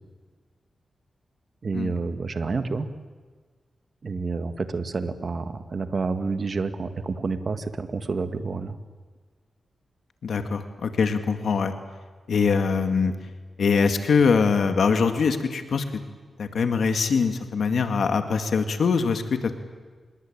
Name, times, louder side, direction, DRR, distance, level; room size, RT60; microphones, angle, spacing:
voice 1, 1.6-2.9 4.0-8.8, right 4 dB, 50° right, 9 dB, 1.8 m, -29 dB
voice 2, 10.2-11.7 12.3-13.1 13.6-15.8 16.4-19.5, left 5 dB, 75° left, 7 dB, 2.2 m, -23 dB
26.5 x 21.5 x 8.8 m, 1.5 s
cardioid pair, 85°, 0 cm